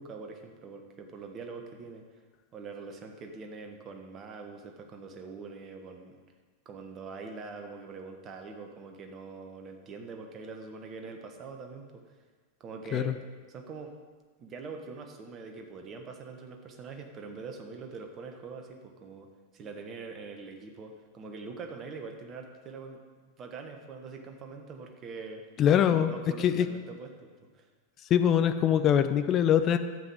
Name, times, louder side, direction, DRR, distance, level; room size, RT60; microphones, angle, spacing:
voice 1, 0.0-2.2 2.5-6.2 6.6-12.1 12.6-13.1 13.5-13.9 14.4-19.3 19.5-23.0 23.4-25.4 25.7-27.7, right 4 dB, 30° right, 4 dB, 1.4 m, -43 dB
voice 2, 25.6-26.1 26.4-26.7 28.1-29.8, left 9 dB, 30° left, 9 dB, 0.6 m, -23 dB
12.0 x 8.1 x 4.9 m, 1.4 s
figure-of-eight pair, 90°, 0 cm